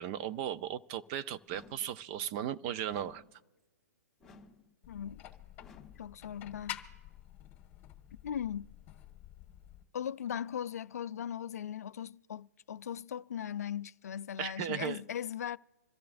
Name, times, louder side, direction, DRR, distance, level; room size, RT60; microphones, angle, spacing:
voice 1, 0.0-3.2 14.4-15.0, right 10 dB, 35° right, 0.5 m, -36 dB
sound 1, 1.5-2.0 2.9-3.4 4.2-4.7 5.6-6.1, left 4 dB, 5° left, 1.7 m, -57 dB
sound 2, 4.8-9.8, left 12 dB, 25° left, 1.6 m, -49 dB
voice 2, 4.9-5.2 6.0-6.8 8.2-8.7 9.9-15.6, left 9 dB, 65° left, 0.4 m, -38 dB
26.5 x 13.5 x 2.5 m
hypercardioid pair, 135°, 9 cm